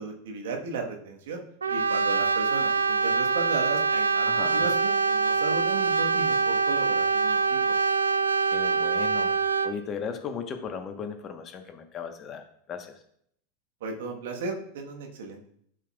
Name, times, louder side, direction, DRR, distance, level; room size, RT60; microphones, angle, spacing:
voice 1, 0.0-1.4 1.7-7.6 13.8-15.5, right 4 dB, 70° right, 1 dB, 1.3 m, -35 dB
Brass instrument, 1.6-9.8, right 4 dB, 85° right, 0.4 m, -24 dB
voice 2, 4.2-4.7 8.5-9.4 9.6-13.0, left 6 dB, 35° left, 6 dB, 1.1 m, -36 dB
11.5 x 5.3 x 2.4 m, 0.67 s
hypercardioid pair, 90°, 0 cm